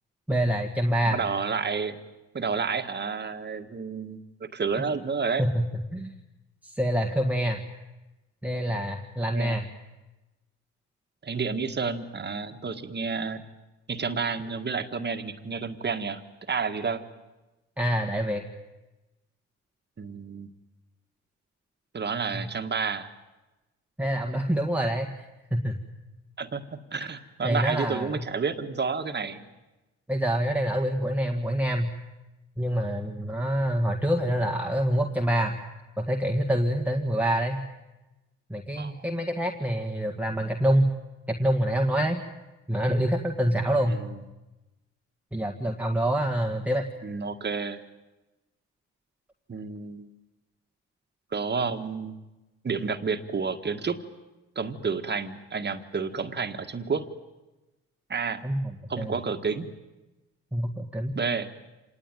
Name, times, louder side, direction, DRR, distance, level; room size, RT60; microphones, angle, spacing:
voice 1, 0.3-1.2 5.4-6.1 6.6-7.6 8.4-9.7 17.8-18.4 22.3-22.5 24.0-25.2 25.5-25.8 27.4-28.2 30.1-31.9 32.6-35.6 36.0-37.6 38.5-40.9 41.3-42.2 42.7-44.0 45.3-46.8 58.4-58.7 59.0-59.2 60.5-61.2, equal, 5° right, 2 dB, 1.7 m, -26 dB
voice 2, 1.1-2.0 2.3-5.4 9.3-9.6 11.2-13.4 13.9-16.2 16.5-17.0 20.0-20.5 21.9-23.1 26.4-29.5 38.8-39.0 43.9-44.2 47.0-47.8 49.5-50.1 51.3-52.2 52.6-54.0 54.5-57.1 58.1-58.4 58.9-59.7 61.1-61.5, right 5 dB, 35° right, 7 dB, 1.8 m, -30 dB
26.5 x 19.0 x 9.2 m, 1.1 s
cardioid pair, 90°, 30 cm